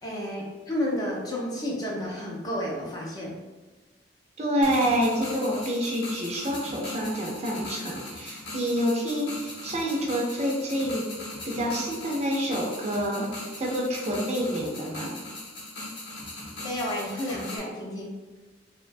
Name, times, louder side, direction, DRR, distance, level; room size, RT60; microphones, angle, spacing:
voice 1, 0.0-3.4 16.6-18.1, left 1 dB, 20° left, -3 dB, 0.5 m, -31 dB
voice 2, 4.4-11.1 11.4-15.2, equal, 35° right, -2 dB, 0.5 m, -28 dB
sound 1, 4.6-17.6, left 2 dB, 70° left, 0.7 m, -39 dB
2.9 x 2.1 x 2.5 m, 1.3 s
head